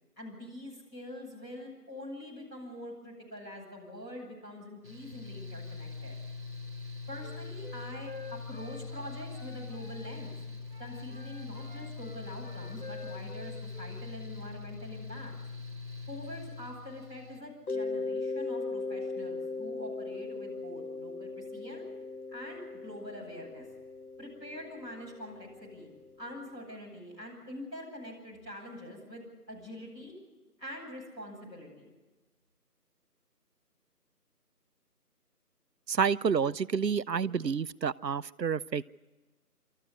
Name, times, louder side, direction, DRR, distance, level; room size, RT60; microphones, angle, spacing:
voice 1, 0.1-6.2 7.1-10.4 10.8-15.3 16.1-21.9 22.3-23.6 24.2-25.9 26.2-30.1 30.6-31.9, left 1 dB, 10° left, -13 dB, 7.0 m, -45 dB
Mechanical fan, 4.8-17.4, left 4 dB, 10° right, 2.2 m, -42 dB
Wind instrument woodwind instrument, 7.2-10.4 10.7-14.1, left 2 dB, 30° left, 2.0 m, -50 dB
Mallet percussion, 17.7-26.3, left 3 dB, 65° left, 0.7 m, -38 dB
voice 2, 35.9-38.8, right 6 dB, 85° right, 17 dB, 0.7 m, -29 dB
25.0 x 14.0 x 9.8 m, 1.2 s
figure-of-eight pair, 170°, 48 cm